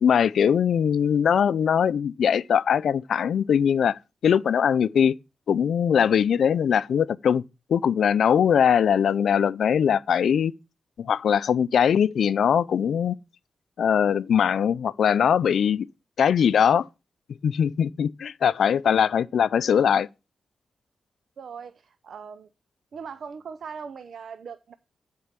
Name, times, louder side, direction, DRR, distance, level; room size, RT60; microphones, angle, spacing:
voice 1, 0.0-5.2 5.5-7.4 7.7-10.5 11.0-13.2 13.8-15.9 16.2-16.9 17.4-20.1, left 8 dB, 80° left, 0.4 m, -21 dB
voice 2, 21.4-22.5 22.9-24.7, right 6 dB, 70° right, 0.6 m, -40 dB
8.5 x 4.5 x 7.4 m
cardioid pair, 80°, 0 cm